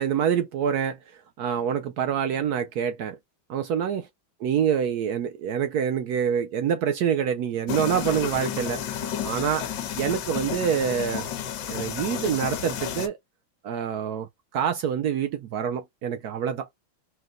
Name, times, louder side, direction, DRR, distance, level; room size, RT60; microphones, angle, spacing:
voice 1, 0.0-3.2 3.5-4.1 4.4-9.7 10.0-11.3 11.7-13.2 13.6-16.7, right 8 dB, 75° right, 0.9 m, -26 dB
sound 1, 7.7-13.1, left 9 dB, 70° left, 1.3 m, -31 dB
4.6 x 2.1 x 3.7 m
omnidirectional pair, 2.2 m